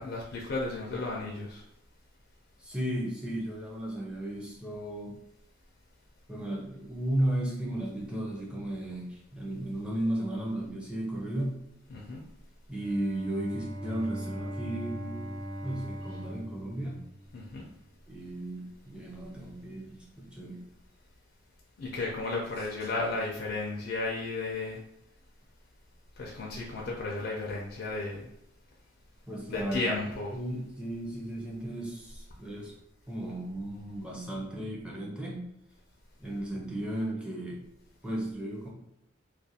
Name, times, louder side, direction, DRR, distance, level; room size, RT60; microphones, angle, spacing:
voice 1, 0.0-1.6 11.9-12.2 17.3-17.7 21.8-24.8 26.2-28.3 29.5-30.3, left 3 dB, 55° left, -3 dB, 0.4 m, -34 dB
voice 2, 2.6-5.2 6.3-11.5 12.7-15.3 15.6-17.0 18.1-20.6 29.3-29.9 30.3-32.7 33.1-35.4 36.2-37.6 38.0-38.7, right 1 dB, 5° right, -3 dB, 0.5 m, -34 dB
Bowed string instrument, 12.7-17.7, equal, 75° right, 1.0 m, -40 dB
2.3 x 2.2 x 2.7 m, 0.80 s
head